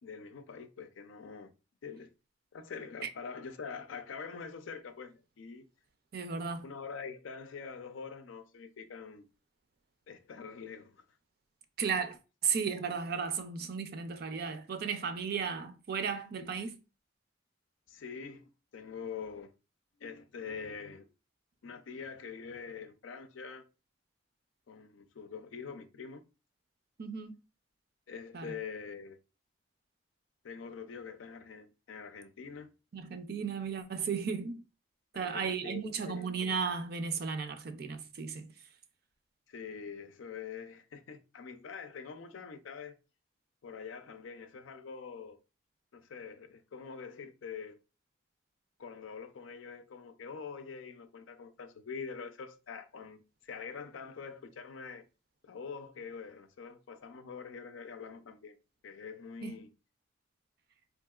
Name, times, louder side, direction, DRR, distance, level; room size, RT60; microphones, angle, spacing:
voice 1, 0.0-1.5 1.8-2.1 2.5-5.7 6.6-9.2 10.1-11.0 17.9-19.5 20.0-21.1 21.6-23.7 24.7-26.2 28.1-29.2 30.4-32.7 35.1-36.3 39.5-43.0 43.6-45.4 45.9-47.8 48.8-55.0 55.4-58.6 58.8-59.7, left 5 dB, 80° left, 0.5 m, -45 dB
voice 2, 6.1-6.6 11.8-12.2 12.4-16.7 27.0-27.3 28.3-28.5 32.9-34.6 35.2-38.4 59.4-59.5, right 6 dB, 50° right, 0.4 m, -35 dB
3.8 x 2.8 x 2.3 m
head